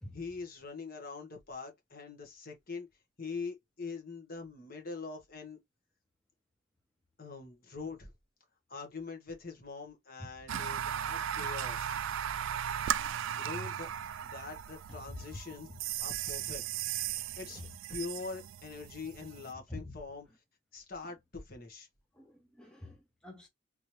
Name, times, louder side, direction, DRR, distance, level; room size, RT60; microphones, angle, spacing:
voice 1, 0.1-2.9 3.2-5.6 7.2-8.1 8.7-12.0 13.4-13.9 14.2-15.7 16.0-16.6 17.4-17.6 17.9-20.3 20.7-21.9, left 4 dB, 45° left, 1.3 m, -43 dB
sound 1, 10.5-19.5, right 10 dB, 70° right, 0.3 m, -37 dB
voice 2, 19.7-20.0 22.1-23.5, left 1 dB, 5° left, 0.7 m, -47 dB
3.7 x 3.3 x 2.9 m
head